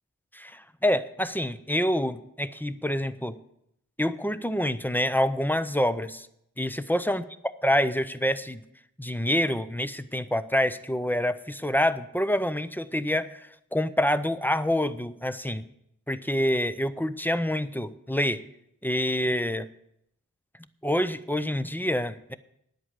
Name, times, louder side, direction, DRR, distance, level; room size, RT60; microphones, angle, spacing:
voice 1, 0.3-3.4 4.0-6.3 6.6-8.6 9.0-15.7 16.1-18.4 18.8-19.7 20.8-22.3, left 1 dB, 5° left, 13 dB, 0.6 m, -27 dB
10.0 x 8.2 x 7.4 m, 0.76 s
wide cardioid pair, 65°, 34 cm